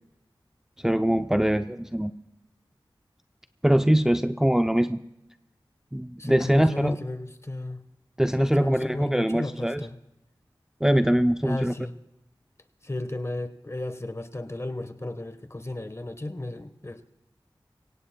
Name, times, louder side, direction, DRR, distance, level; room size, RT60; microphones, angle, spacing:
voice 1, 0.8-2.1 3.6-5.0 5.9-7.0 8.2-9.8 10.8-11.7, equal, 5° right, 8 dB, 0.5 m, -23 dB
voice 2, 6.2-7.8 8.4-10.0 11.4-11.9 12.8-17.0, left 1 dB, 30° left, 10 dB, 1.2 m, -33 dB
24.5 x 16.5 x 2.2 m, 0.91 s
wide cardioid pair, 45°, 9 cm